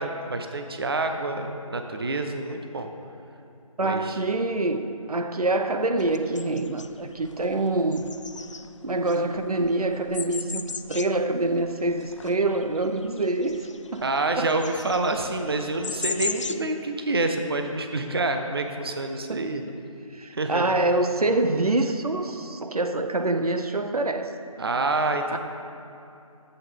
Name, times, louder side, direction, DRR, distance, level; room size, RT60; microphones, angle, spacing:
voice 1, 0.0-2.9 3.8-4.1 14.0-19.6 20.4-20.6 24.6-25.4, right 2 dB, 40° right, 5 dB, 0.6 m, -27 dB
voice 2, 3.8-8.1 8.8-14.1 14.4-14.5 19.3-19.6 20.1-24.3 25.3-25.4, right 2 dB, 85° right, 8 dB, 0.7 m, -26 dB
sound 1, 6.0-16.6, left 4 dB, 55° left, 0.4 m, -38 dB
11.0 x 7.9 x 3.6 m, 2.8 s
figure-of-eight pair, 165°, 19 cm